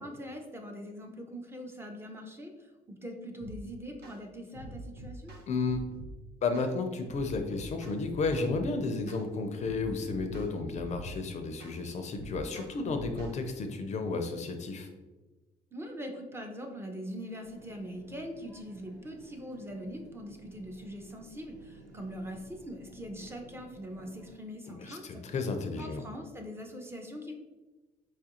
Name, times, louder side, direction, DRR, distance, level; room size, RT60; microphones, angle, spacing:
voice 1, 0.0-5.3 15.7-25.2 25.8-27.3, equal, 15° right, 3 dB, 0.4 m, -42 dB
sound 1, 3.4-3.6 4.0-4.2 4.5-6.1 6.5-6.7 7.1-8.7 9.1-9.3 9.6-11.2 11.6-11.8 12.1-13.4, right 1 dB, 80° right, 1.0 m, -44 dB
voice 2, 5.5-5.8 6.4-14.9 24.7-26.0, left 3 dB, 45° left, 6 dB, 0.4 m, -32 dB
sound 2, 17.4-24.4, right 2 dB, 55° right, 0.9 m, -54 dB
4.5 x 2.4 x 2.8 m, 1.2 s
cardioid pair, 110°, 17 cm